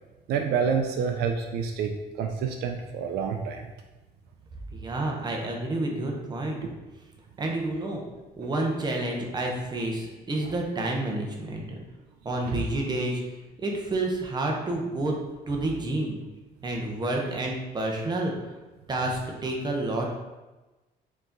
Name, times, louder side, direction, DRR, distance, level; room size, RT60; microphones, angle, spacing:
voice 1, 0.3-3.7 6.6-6.7 12.5-12.6, right 6 dB, 70° right, 4 dB, 0.4 m, -28 dB
voice 2, 4.7-6.7 7.4-8.0 8.4-11.8 12.2-13.2 13.6-15.2 15.5-16.2 16.6-18.3 18.9-20.1, right 2 dB, 25° right, 0 dB, 0.9 m, -29 dB
4.6 x 2.9 x 3.9 m, 1.1 s
cardioid pair, 110°, 17 cm